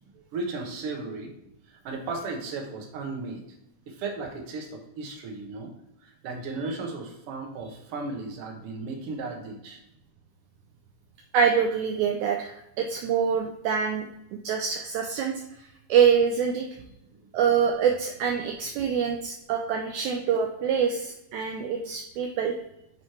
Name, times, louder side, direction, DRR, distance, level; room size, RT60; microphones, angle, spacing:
voice 1, 0.3-1.3 1.7-3.4 3.9-5.7 6.0-9.8, right 3 dB, 60° right, 1 dB, 1.8 m, -35 dB
voice 2, 11.3-14.1 14.4-15.3 15.9-16.7 17.3-22.6, right 7 dB, 80° right, 2 dB, 1.8 m, -25 dB
7.6 x 3.2 x 4.3 m, 0.85 s
omnidirectional pair, 3.7 m